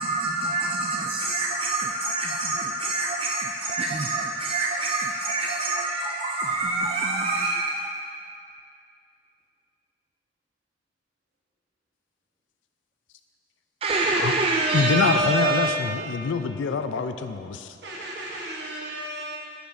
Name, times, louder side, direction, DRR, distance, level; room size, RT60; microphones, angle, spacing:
voice 1, 0.0-7.9 13.8-15.8, right 3 dB, 30° right, 0 dB, 0.3 m, -26 dB
voice 2, 14.7-17.7, left 5 dB, 80° left, 9 dB, 0.4 m, -25 dB
voice 3, 17.8-19.4, right 1 dB, 60° right, -3 dB, 1.1 m, -35 dB
10.0 x 5.0 x 2.7 m, 2.4 s
head